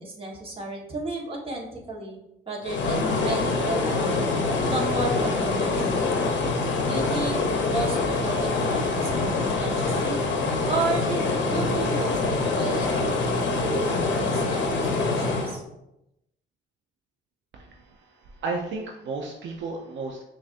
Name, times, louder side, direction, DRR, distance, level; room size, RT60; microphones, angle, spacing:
voice 1, 0.0-2.2 2.5-4.2 4.7-6.0 6.9-7.4 7.7-10.2 10.7-12.9 13.6-15.6, right 2 dB, 25° right, -3 dB, 1.3 m, -33 dB
sound 1, 2.6-15.6, left 3 dB, 65° left, 0.8 m, -25 dB
voice 2, 17.5-20.2, right 3 dB, 70° right, 1 dB, 0.6 m, -34 dB
5.9 x 2.5 x 2.5 m, 0.86 s
cardioid pair, 90°, 20 cm